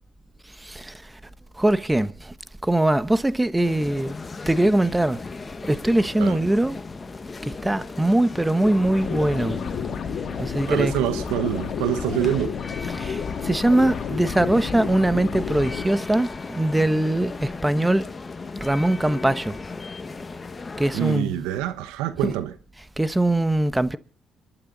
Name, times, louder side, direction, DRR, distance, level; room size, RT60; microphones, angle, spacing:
voice 1, 0.6-1.2 1.6-2.3 2.6-4.1 4.5-5.2 5.6-6.8 7.4-9.6 10.4-10.9 12.9-18.1 18.6-19.6 20.8-21.4 22.2-22.3 23.0-24.0, right 1 dB, 10° right, 1.2 m, -22 dB
sound 1, 3.6-21.2, left 4 dB, 30° left, 1.4 m, -36 dB
sound 2, 8.6-15.8, left 7 dB, 60° left, 2.3 m, -31 dB
voice 2, 10.7-12.6 20.9-22.5, right 12 dB, 85° right, 1.1 m, -25 dB
29.0 x 12.0 x 4.0 m
supercardioid pair, 65°, 0 cm